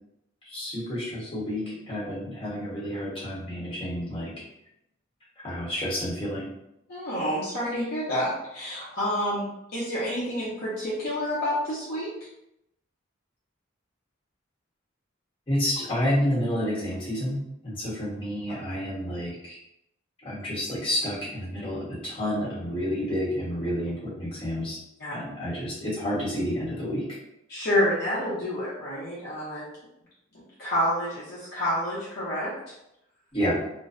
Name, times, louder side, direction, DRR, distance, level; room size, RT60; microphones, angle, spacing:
voice 1, 0.4-4.3 5.4-6.5 15.5-17.4 17.6-19.6 20.2-24.8 25.1-27.2 33.3-33.6, equal, 25° left, -8 dB, 1.1 m, -29 dB
voice 2, 6.9-12.1 25.0-25.1 27.5-29.7 30.6-32.5, equal, 50° left, -8 dB, 0.6 m, -28 dB
2.5 x 2.1 x 2.4 m, 0.84 s
head